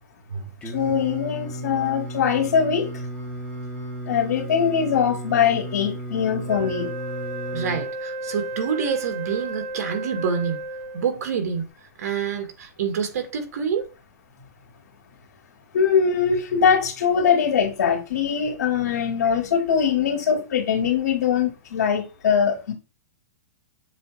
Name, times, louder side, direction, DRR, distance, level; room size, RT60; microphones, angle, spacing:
Singing, 0.6-7.8, right 1 dB, 10° left, 1.6 m, -34 dB
voice 1, 0.7-3.0 4.1-6.9 15.7-22.7, left 7 dB, 85° left, 2.4 m, -22 dB
Wind instrument woodwind instrument, 6.5-11.2, right 2 dB, 40° right, 2.3 m, -33 dB
voice 2, 7.5-10.6 10.9-11.7 12.0-13.9, right 6 dB, 65° right, 1.9 m, -27 dB
7.3 x 3.1 x 4.2 m
hypercardioid pair, 165°, 9 cm